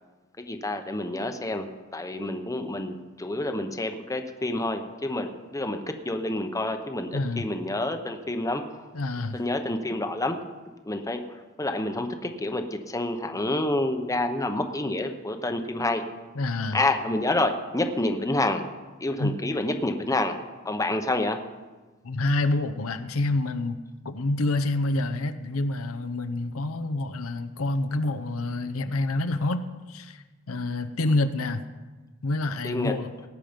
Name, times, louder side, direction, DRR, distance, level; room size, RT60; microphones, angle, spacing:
voice 1, 0.4-5.8 6.0-8.6 9.3-10.4 10.9-16.0 16.7-18.6 19.0-20.3 20.6-21.4 32.6-32.9, left 2 dB, 15° left, 6 dB, 0.9 m, -28 dB
voice 2, 7.1-7.5 8.9-9.4 16.4-16.8 19.2-19.4 22.0-31.6 32.2-33.1, left 2 dB, 80° left, 8 dB, 0.8 m, -27 dB
18.0 x 9.3 x 5.2 m, 1.3 s
head